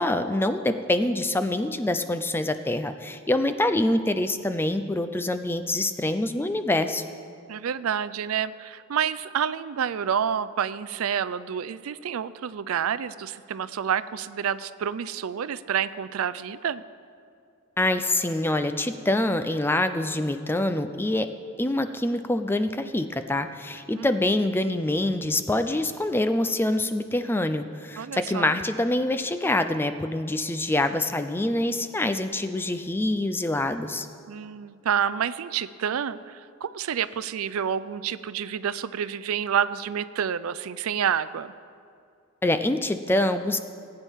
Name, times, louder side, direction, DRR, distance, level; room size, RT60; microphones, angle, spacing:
voice 1, 0.0-7.0 17.8-21.3 21.6-34.1 42.4-43.6, left 1 dB, 10° left, 9 dB, 0.4 m, -25 dB
voice 2, 7.5-16.8 24.0-24.1 28.0-28.5 34.3-41.5, right 8 dB, 80° right, 15 dB, 0.4 m, -28 dB
19.5 x 8.9 x 3.6 m, 2.4 s
head